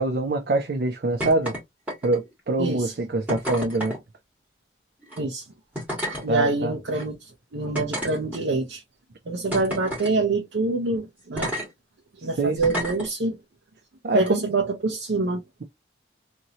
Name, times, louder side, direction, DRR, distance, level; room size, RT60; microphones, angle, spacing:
voice 1, 0.0-1.6 2.0-4.0 6.3-6.7 12.4-12.6 14.0-14.5, right 2 dB, 55° right, 0.5 m, -24 dB
sound 1, 1.2-1.6 1.9-2.3 3.3-4.0 5.0-5.2 5.7-6.2 6.9-7.0 7.7-8.6 9.5-10.1 11.4-11.7 12.6-13.1 14.2-14.3, equal, 10° right, 1.5 m, -30 dB
voice 2, 2.6-2.9 5.2-5.5 6.2-8.8 9.3-11.5 12.2-13.4 14.1-15.4, right 3 dB, 90° right, 0.7 m, -26 dB
2.9 x 2.6 x 2.8 m
head